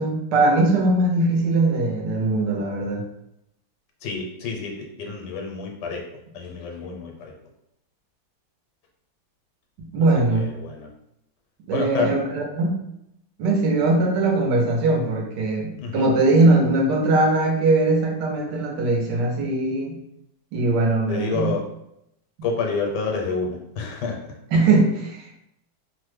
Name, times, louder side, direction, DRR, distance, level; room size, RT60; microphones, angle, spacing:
voice 1, 0.0-3.0 9.8-10.5 11.7-12.8 13.4-19.9 20.5-21.5 24.5-25.4, right 2 dB, 80° right, 1 dB, 1.3 m, -20 dB
voice 2, 4.0-6.0 6.3-7.3 10.3-10.9 11.7-12.1 15.8-16.1 21.1-21.7 22.4-24.4, left 4 dB, 80° left, 1 dB, 1.2 m, -29 dB
3.1 x 2.1 x 3.2 m, 0.79 s
omnidirectional pair, 1.9 m